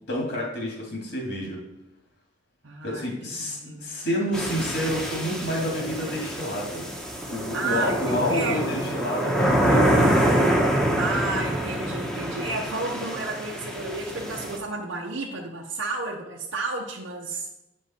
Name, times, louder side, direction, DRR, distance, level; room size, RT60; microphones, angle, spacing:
voice 1, 0.1-1.6 2.8-6.9 7.3-10.2, equal, 65° left, -1 dB, 2.1 m, -29 dB
voice 2, 2.6-3.9 7.5-8.9 11.0-17.5, right 3 dB, 85° right, -1 dB, 0.8 m, -32 dB
sound 1, 4.3-14.6, right 1 dB, 5° left, 1.0 m, -26 dB
8.3 x 5.3 x 4.3 m, 0.88 s
head